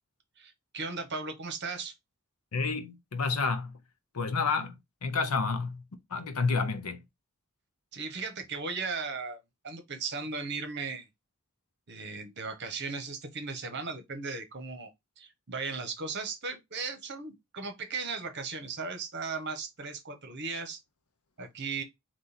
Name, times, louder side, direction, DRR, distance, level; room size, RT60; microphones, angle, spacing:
voice 1, 0.4-1.9 7.9-9.4 9.6-11.1 11.9-14.9 15.2-20.8 21.4-21.8, right 4 dB, 50° right, 1.1 m, -37 dB
voice 2, 2.5-3.8 4.1-5.8 6.1-7.0, left 4 dB, 80° left, 0.8 m, -30 dB
3.9 x 3.0 x 4.1 m
head